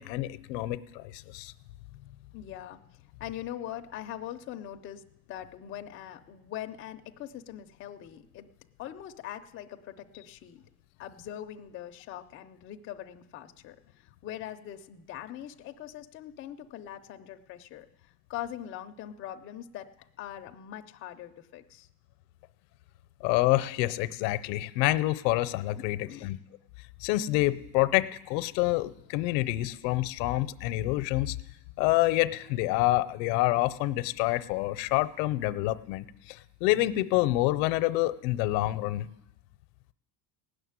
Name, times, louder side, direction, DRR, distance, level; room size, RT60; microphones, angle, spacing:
voice 1, 0.0-1.5 23.2-26.4 27.0-31.4 31.8-39.1, left 17 dB, 85° left, 15 dB, 0.7 m, -27 dB
voice 2, 2.3-2.8 3.2-8.5 8.8-10.6 11.0-19.9 20.2-21.9 25.8-26.3, left 11 dB, 25° left, 5 dB, 0.5 m, -42 dB
17.0 x 6.6 x 9.5 m, 0.92 s
cardioid pair, 150°, 50 cm